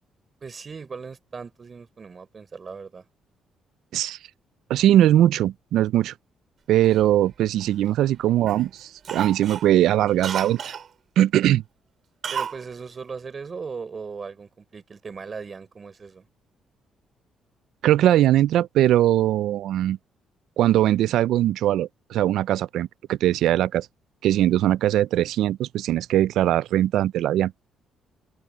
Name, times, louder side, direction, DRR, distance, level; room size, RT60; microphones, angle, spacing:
voice 1, 0.4-3.0 12.3-16.2, right 5 dB, 35° right, 4.9 m, -38 dB
voice 2, 4.7-6.1 6.7-10.8 11.2-11.6 17.8-20.0 20.6-23.9 24.2-27.5, right 13 dB, 80° right, 0.4 m, -20 dB
Cough, 6.8-8.1 8.5-8.7 9.0-10.9 12.2-12.6 12.9-13.0, right 7 dB, 55° right, 4.0 m, -33 dB
open air
cardioid pair, 90°, 0 cm